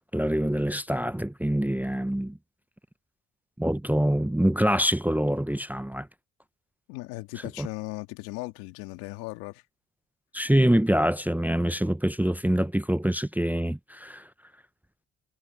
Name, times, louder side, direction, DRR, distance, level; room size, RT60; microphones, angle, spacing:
voice 1, 0.1-2.4 3.6-6.1 7.6-7.7 10.3-14.3, right 1 dB, 5° right, 0.7 m, -25 dB
voice 2, 6.9-9.6, left 21 dB, 90° left, 2.1 m, -37 dB
supercardioid pair, 60°, 36 cm